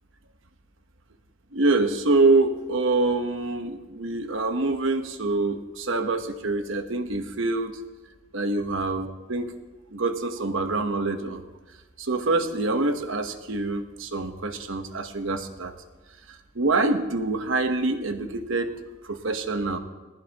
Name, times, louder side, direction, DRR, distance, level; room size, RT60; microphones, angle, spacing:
voice 1, 1.5-7.7 8.3-9.5 9.9-11.4 12.0-15.7 16.6-18.7 19.1-19.8, right 3 dB, 65° right, 7 dB, 1.1 m, -25 dB
19.0 x 15.5 x 3.0 m, 1.2 s
head